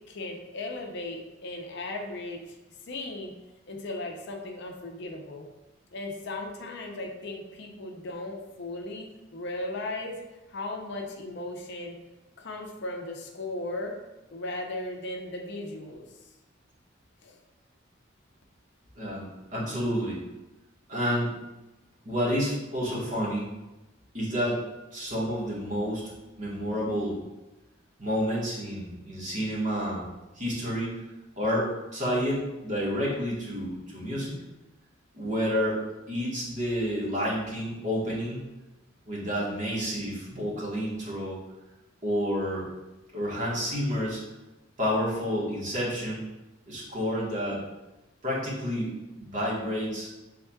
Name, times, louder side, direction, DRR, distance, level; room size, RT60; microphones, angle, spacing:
voice 1, 0.0-2.6 2.8-3.3 3.7-5.5 5.9-10.2 10.5-11.9 12.4-14.0 14.3-16.1 17.2-17.4, left 2 dB, 60° left, 2 dB, 0.6 m, -36 dB
voice 2, 18.9-20.2 20.9-21.4 22.0-23.5 24.1-24.6 24.9-26.0 26.4-27.2 28.0-30.1 30.3-31.0 31.4-34.4 35.1-35.8 36.1-38.4 39.1-41.4 42.0-42.6 43.1-44.2 44.8-46.3 46.7-47.6 48.2-50.1, equal, 40° right, -6 dB, 1.4 m, -29 dB
5.7 x 3.5 x 2.3 m, 1.0 s
head